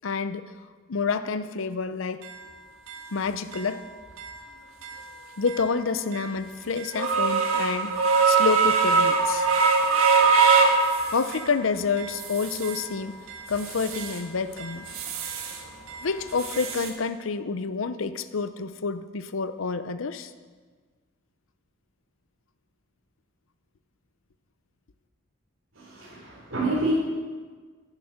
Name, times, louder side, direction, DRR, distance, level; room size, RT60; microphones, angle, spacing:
voice 1, 0.0-0.5 0.9-2.3 3.1-3.9 5.4-7.9 8.2-9.5 11.1-13.2 13.5-14.9 16.0-20.3, left 5 dB, 70° left, 12 dB, 0.6 m, -28 dB
sound 1, 2.2-2.3 2.9-3.0 3.5-3.6 4.2-4.3 4.8-5.0 5.5-5.6 6.1-6.2 6.8-11.5 12.0-12.9 13.3-14.2 14.6-15.6 15.9-16.9, right 4 dB, 90° right, 1.5 m, -23 dB
voice 2, 25.7-26.9, right 2 dB, 65° right, -8 dB, 3.9 m, -28 dB
11.5 x 10.5 x 6.5 m, 1.5 s
head